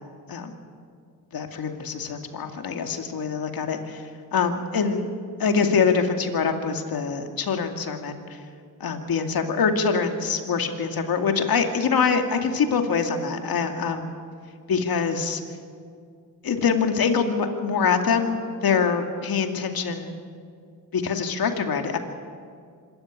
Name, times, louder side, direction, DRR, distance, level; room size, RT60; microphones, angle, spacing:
voice 1, 1.3-4.0 4.3-5.1 5.4-8.2 8.8-14.1 14.7-15.4 16.4-18.4 18.6-20.1 20.9-22.0, left 5 dB, 60° left, 5 dB, 2.4 m, -24 dB
25.5 x 14.0 x 8.5 m, 2.2 s
cardioid pair, 70°, 40 cm